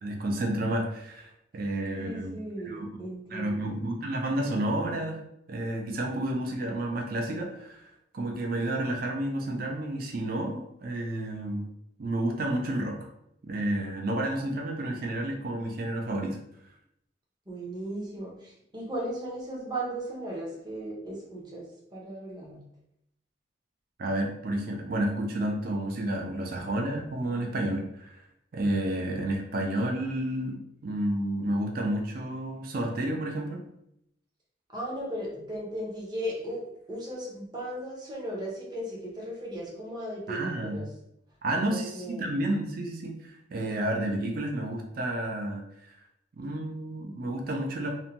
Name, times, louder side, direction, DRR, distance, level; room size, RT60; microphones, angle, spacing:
voice 1, 0.0-2.4 2.6-3.0 3.3-5.2 5.5-11.7 12.0-13.0 13.4-16.4 24.0-28.2 28.5-33.6 40.3-40.8 41.4-46.0 46.3-47.9, right 1 dB, 50° right, 1 dB, 0.4 m, -31 dB
voice 2, 2.0-3.7 17.5-21.7 21.9-22.6 34.7-36.6 36.9-40.8 41.6-42.3, right 1 dB, 20° right, -4 dB, 0.7 m, -36 dB
2.6 x 2.2 x 2.8 m, 0.77 s
head